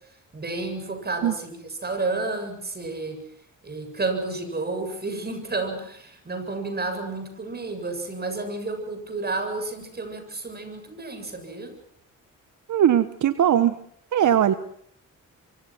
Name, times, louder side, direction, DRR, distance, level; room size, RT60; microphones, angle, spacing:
voice 1, 0.3-3.2 3.6-11.7, right 3 dB, 30° right, 7 dB, 7.6 m, -31 dB
voice 2, 12.7-13.8 14.1-14.5, right 10 dB, 70° right, 12 dB, 1.2 m, -19 dB
25.0 x 25.0 x 6.1 m, 0.67 s
cardioid pair, 105°, 32 cm